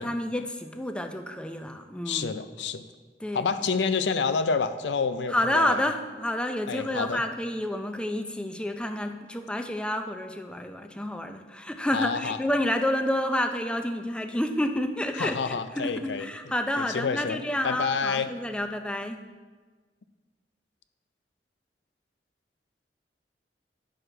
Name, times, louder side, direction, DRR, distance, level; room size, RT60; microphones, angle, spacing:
voice 1, 0.0-2.3 3.2-3.5 5.3-19.2, left 1 dB, 5° left, 6 dB, 0.5 m, -29 dB
voice 2, 2.1-2.8 3.3-5.8 6.7-7.2 11.9-12.4 15.1-16.3 16.8-17.4 17.6-18.3, left 5 dB, 85° left, 11 dB, 0.5 m, -28 dB
10.5 x 6.3 x 3.3 m, 1.4 s
head